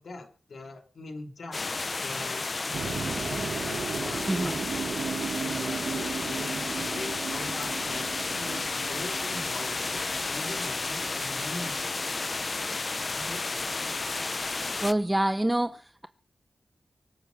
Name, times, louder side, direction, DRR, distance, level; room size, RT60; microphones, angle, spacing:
voice 1, 0.0-4.7 5.4-8.0 8.3-12.8 13.1-13.7, left 2 dB, 70° left, 2.9 m, -42 dB
sound 1, 1.5-14.9, left 3 dB, 40° left, 0.7 m, -32 dB
sound 2, 2.7-12.9, right 5 dB, 90° right, 1.7 m, -36 dB
voice 2, 4.3-4.6 14.8-16.1, right 1 dB, 10° right, 0.7 m, -27 dB
24.0 x 8.2 x 7.0 m
wide cardioid pair, 115°, 0 cm